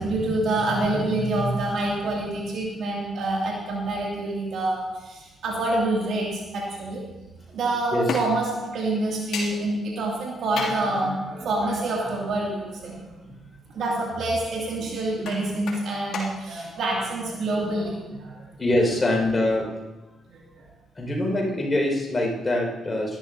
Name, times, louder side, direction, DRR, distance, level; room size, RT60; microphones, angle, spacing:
voice 1, 0.0-7.0 7.5-13.3 13.7-18.4 20.3-20.7, right 2 dB, 70° right, -3 dB, 2.5 m, -27 dB
sound 1, 8.1-8.5 9.3-9.6 10.6-10.9 11.9-12.0 12.7-12.8 15.2-15.9 16.1-16.3, left 4 dB, 70° left, 2.7 m, -31 dB
voice 2, 18.6-19.8 21.0-23.2, left 1 dB, 20° left, -1 dB, 5.3 m, -24 dB
18.0 x 12.5 x 2.8 m, 1.1 s
cardioid pair, 90°, 0 cm